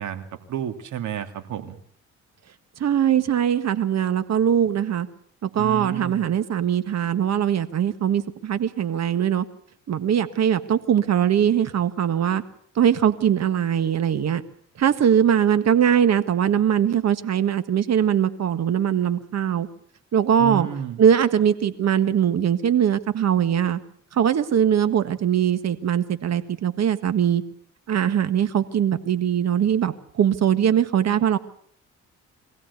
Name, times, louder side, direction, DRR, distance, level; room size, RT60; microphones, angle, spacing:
voice 1, 0.0-1.8 5.6-6.3 20.4-21.0, right 9 dB, 75° right, 7 dB, 2.6 m, -31 dB
voice 2, 2.8-5.1 5.4-9.4 9.9-12.4 12.7-14.4 14.8-19.7 20.1-20.7 21.0-23.8 24.1-27.4 27.9-31.4, right 9 dB, 60° right, 12 dB, 1.6 m, -21 dB
23.0 x 16.0 x 8.3 m, 0.63 s
cardioid pair, 90°, 30 cm